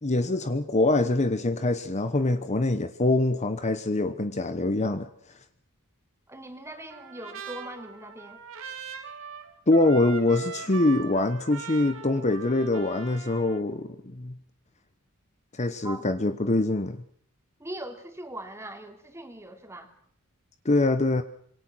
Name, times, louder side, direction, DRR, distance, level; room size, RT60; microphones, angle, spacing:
voice 1, 0.0-5.1 9.7-14.4 15.5-17.0 20.6-21.2, left 2 dB, 30° left, 1.0 m, -24 dB
voice 2, 6.3-8.4 15.8-16.1 17.6-19.9, right 1 dB, 15° right, 3.0 m, -40 dB
Trumpet, 6.9-13.6, right 7 dB, 65° right, 2.7 m, -41 dB
26.0 x 23.5 x 6.2 m
head